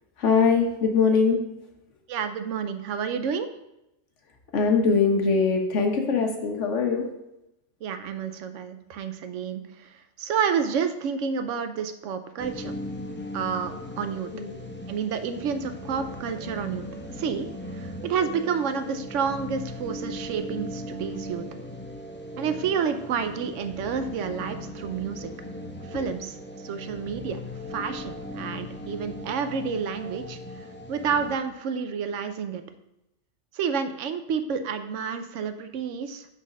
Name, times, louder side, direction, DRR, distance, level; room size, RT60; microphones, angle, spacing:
voice 1, 0.2-1.4 4.5-7.0 14.3-14.5, left 5 dB, 80° left, 3 dB, 1.3 m, -22 dB
voice 2, 2.1-3.5 7.8-12.7 13.3-14.3 14.9-16.9 17.2-21.4 22.4-25.3 25.9-26.4 26.6-27.4 27.7-32.6 33.5-36.3, right 6 dB, 90° right, 9 dB, 1.0 m, -30 dB
sound 1, 12.4-31.3, left 1 dB, 15° left, 0.4 m, -38 dB
6.2 x 4.1 x 5.3 m, 0.87 s
omnidirectional pair, 1.2 m